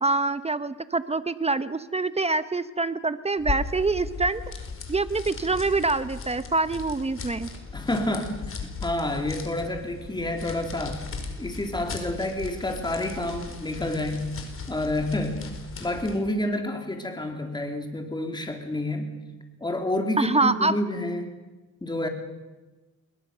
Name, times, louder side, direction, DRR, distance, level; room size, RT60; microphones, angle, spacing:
voice 1, 0.0-4.4 4.9-7.5 20.2-20.7, right 3 dB, 20° right, 13 dB, 1.0 m, -25 dB
sound 1, 3.4-16.3, left 4 dB, 45° left, 5.3 m, -37 dB
voice 2, 7.7-11.0 11.4-14.3 14.7-15.5 15.8-19.1 19.6-21.4 21.8-22.1, left 1 dB, 15° left, 4 dB, 3.6 m, -29 dB
28.5 x 22.5 x 6.9 m, 1.2 s
cardioid pair, 90°, 30 cm